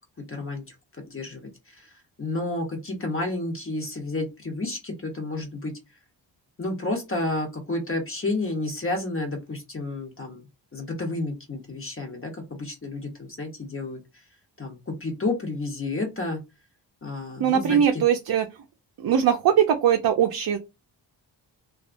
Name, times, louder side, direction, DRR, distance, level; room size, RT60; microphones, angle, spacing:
voice 1, 0.3-0.7 1.0-1.9 2.2-5.7 6.6-10.4 10.7-14.0 14.6-16.4 17.0-17.8, left 2 dB, 30° left, 0.9 m, -31 dB
voice 2, 17.4-18.5 19.0-20.6, right 9 dB, 60° right, 0.5 m, -21 dB
2.7 x 2.4 x 2.5 m
cardioid pair, 85°, 43 cm